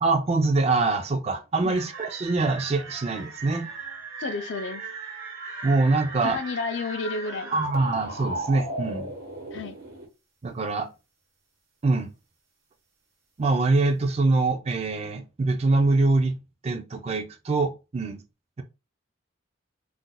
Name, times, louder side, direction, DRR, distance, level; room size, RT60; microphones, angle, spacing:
voice 1, 0.0-3.7 5.6-6.4 7.5-9.1 10.4-10.9 11.8-12.1 13.4-18.2, right 3 dB, 30° right, 0.4 m, -24 dB
sound 1, 1.7-10.1, right 2 dB, 80° right, 1.0 m, -37 dB
voice 2, 4.2-4.8 6.2-7.6 9.5-9.8, left 4 dB, 60° left, 0.4 m, -31 dB
2.5 x 2.1 x 3.8 m
head